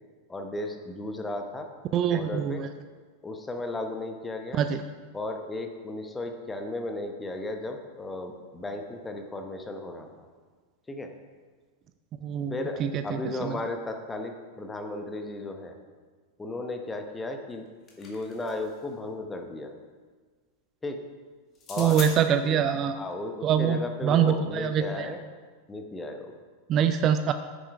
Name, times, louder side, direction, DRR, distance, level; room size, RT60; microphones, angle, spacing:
voice 1, 0.3-1.7 2.1-2.6 3.2-4.6 5.1-10.1 10.9-11.1 12.5-15.7 16.4-17.6 18.0-19.7 20.8-21.0 21.7-22.0 22.4-22.6 22.9-25.2 25.7-26.3, left 2 dB, 10° left, 4 dB, 1.1 m, -35 dB
voice 2, 1.9-2.7 4.6-4.8 12.2-12.5 12.8-12.9 13.4-13.6 21.8-23.0 23.4-25.1 26.7-27.3, right 8 dB, 30° right, 10 dB, 0.4 m, -24 dB
sound 1, 17.5-18.8 21.5-22.1, left 4 dB, 30° left, 2.1 m, -41 dB
9.3 x 7.5 x 4.7 m, 1.5 s
figure-of-eight pair, 90°, 0 cm